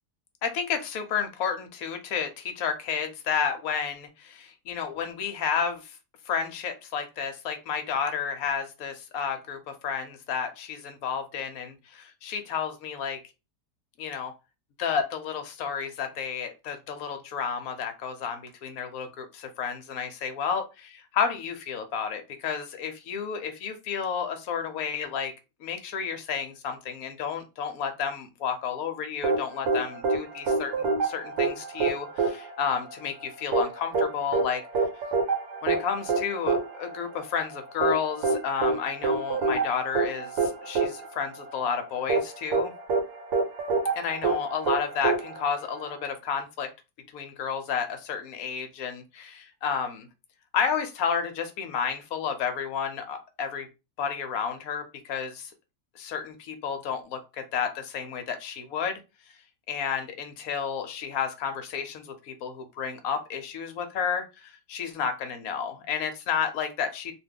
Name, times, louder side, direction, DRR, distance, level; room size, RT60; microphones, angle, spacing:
voice 1, 0.4-5.9 6.3-13.2 14.0-14.3 14.8-20.6 21.1-25.3 25.6-34.9 35.6-42.7 44.0-46.7 47.1-50.1 50.5-53.7 54.0-55.5 56.0-59.0 59.7-67.1, left 7 dB, 70° left, 7 dB, 0.9 m, -31 dB
sound 1, 29.2-46.1, right 4 dB, 70° right, 1.2 m, -27 dB
2.7 x 2.2 x 3.4 m, 0.27 s
omnidirectional pair, 1.8 m